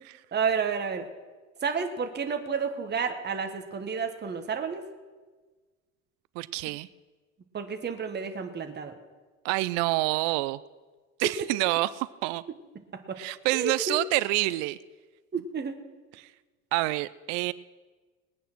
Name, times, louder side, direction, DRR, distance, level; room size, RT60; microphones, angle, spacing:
voice 1, 0.3-1.1 1.6-4.8 7.5-8.9 11.2-11.3 13.1-13.2 13.5-14.0 15.3-15.7, right 6 dB, 25° right, 6 dB, 1.5 m, -30 dB
voice 2, 6.4-6.9 9.4-10.6 11.2-12.4 13.2-14.8 16.2-16.3 16.7-17.5, right 19 dB, 60° right, 18 dB, 0.6 m, -27 dB
20.0 x 9.2 x 6.1 m, 1.3 s
hypercardioid pair, 75°, 41 cm